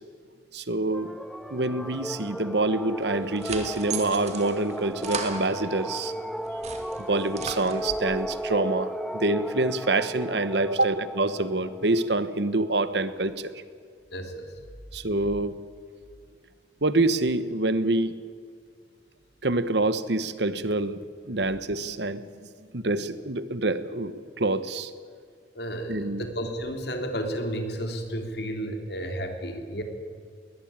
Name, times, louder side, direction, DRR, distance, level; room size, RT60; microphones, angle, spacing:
voice 1, 0.5-1.1 1.5-6.1 7.0-13.5 14.9-15.6 16.8-18.2 19.4-21.0 21.2-22.2 22.7-24.9 25.9-26.2, right 2 dB, 65° right, 14 dB, 1.2 m, -26 dB
sound 1, 0.9-12.7, equal, ahead, 0.7 m, -35 dB
sound 2, 3.0-6.1 6.4-8.2, right 5 dB, 35° right, 2.4 m, -37 dB
voice 2, 14.1-14.5 25.5-29.8, equal, 60° left, 5 dB, 3.4 m, -32 dB
21.5 x 19.5 x 9.0 m, 2.1 s
head